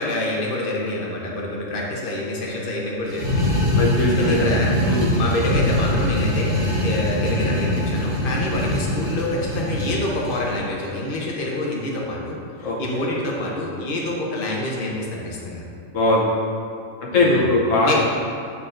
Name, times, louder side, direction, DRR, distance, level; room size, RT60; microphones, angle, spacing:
voice 1, 0.0-3.6 4.1-4.8 5.1-6.5 6.8-15.6 17.1-17.5 17.8-17.9, left 2 dB, 45° left, -3 dB, 1.1 m, -27 dB
sound 1, 3.1-10.5, left 1 dB, 40° right, 1.8 m, -22 dB
voice 2, 3.7-4.5 4.9-5.1 12.6-12.8 15.9-16.2 17.0-17.9, left 2 dB, 75° left, -3 dB, 1.2 m, -20 dB
8.4 x 6.7 x 2.5 m, 2.5 s
omnidirectional pair, 1.3 m